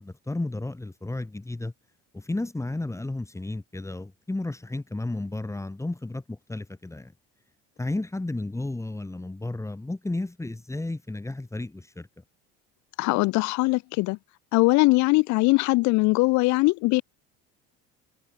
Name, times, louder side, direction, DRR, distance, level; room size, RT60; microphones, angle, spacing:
voice 1, 0.0-1.7 2.1-7.1 7.8-12.1, left 2 dB, 10° left, 1.8 m, -33 dB
voice 2, 13.0-14.2 14.5-17.0, left 23 dB, 60° left, 0.6 m, -21 dB
supercardioid pair, 95°, 32 cm